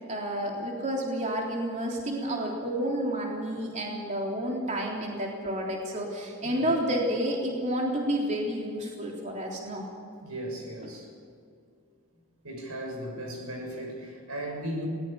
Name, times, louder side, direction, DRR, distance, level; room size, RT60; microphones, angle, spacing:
voice 1, 0.1-9.9, right 1 dB, 35° right, -1 dB, 3.6 m, -30 dB
voice 2, 10.2-11.1 12.4-14.9, right 1 dB, 90° right, 2 dB, 6.9 m, -37 dB
22.0 x 20.0 x 7.0 m, 2.3 s
head